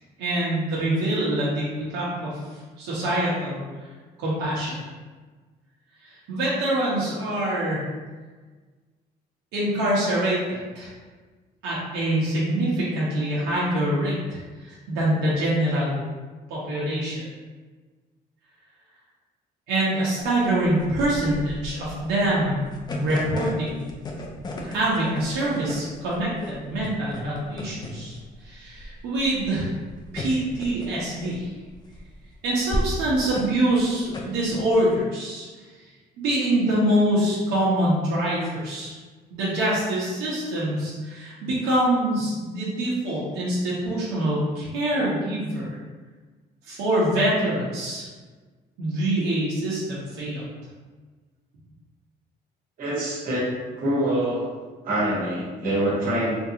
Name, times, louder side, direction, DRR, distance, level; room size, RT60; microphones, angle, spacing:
voice 1, 0.2-2.4 2.8-3.6 4.2-4.8 6.0-7.8 9.5-10.9 11.6-16.0 16.5-17.2 19.7-22.6 22.9-23.8 24.6-28.1 28.4-29.7 30.1-31.5 32.4-35.5 36.2-38.9 39.3-45.7 46.7-48.1 48.8-50.4, right 1 dB, 90° right, -7 dB, 1.0 m, -25 dB
sound 1, 20.2-35.0, left 1 dB, 25° left, 0.5 m, -35 dB
voice 2, 52.8-53.5 53.8-54.5 54.8-56.4, right 1 dB, 55° right, -5 dB, 1.3 m, -25 dB
3.7 x 2.6 x 2.8 m, 1.4 s
cardioid pair, 110°, 17 cm